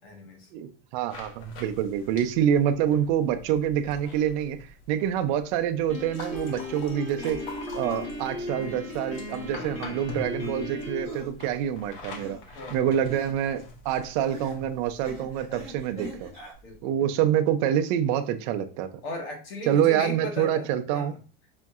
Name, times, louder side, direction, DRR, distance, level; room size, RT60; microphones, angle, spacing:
voice 1, 0.0-0.5 9.6-9.9 12.5-12.9 16.6-17.1 19.0-21.2, left 1 dB, 90° left, 1 dB, 1.6 m, -37 dB
voice 2, 0.5-4.6 4.9-7.4 7.7-12.4 12.7-16.3 16.8-18.9 19.6-21.1, right 10 dB, 50° right, 8 dB, 0.5 m, -26 dB
sound 1, 1.1-16.8, left 2 dB, 70° left, 1.0 m, -45 dB
Piano, 5.9-11.0, left 1 dB, 40° left, 1.5 m, -36 dB
sound 2, 10.4-10.5 11.0-11.3 12.1-12.5 13.1-13.4 14.3-14.6 15.0-16.5, equal, 20° left, 1.0 m, -42 dB
5.1 x 2.6 x 2.4 m, 0.36 s
supercardioid pair, 160°, 30 cm